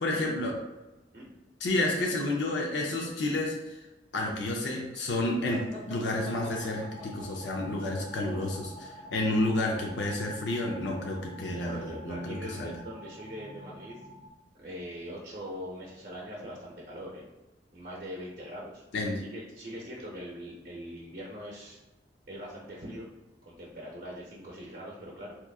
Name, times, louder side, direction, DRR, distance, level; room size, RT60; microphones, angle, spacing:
voice 1, 0.0-0.5 1.6-3.8 4.1-12.7 18.9-19.2, left 2 dB, 85° left, -1 dB, 0.5 m, -30 dB
sound 1, 5.4-9.1, left 1 dB, 10° left, 1.2 m, -46 dB
sound 2, 6.1-14.3, equal, 30° left, 0.9 m, -48 dB
voice 2, 11.6-14.0 14.6-17.2 17.7-18.8 19.2-21.8 22.3-23.1 23.5-25.4, equal, 50° right, -4 dB, 0.6 m, -42 dB
3.5 x 2.9 x 2.3 m, 1.0 s
head